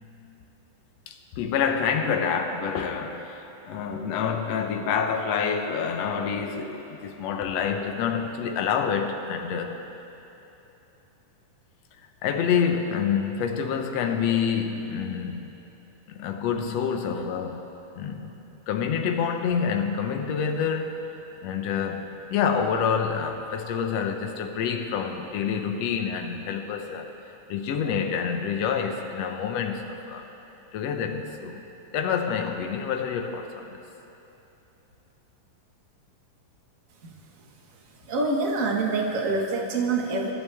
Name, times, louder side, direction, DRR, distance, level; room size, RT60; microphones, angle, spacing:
voice 1, 1.1-9.8 12.2-15.6 16.2-17.7 17.9-18.4 18.7-21.1 21.4-27.1 27.5-30.3 30.7-31.6 31.9-33.8, left 7 dB, 70° left, 4 dB, 1.7 m, -27 dB
voice 2, 38.0-40.3, right 3 dB, 40° right, -2 dB, 1.2 m, -26 dB
26.5 x 11.5 x 3.5 m, 3.0 s
omnidirectional pair, 4.0 m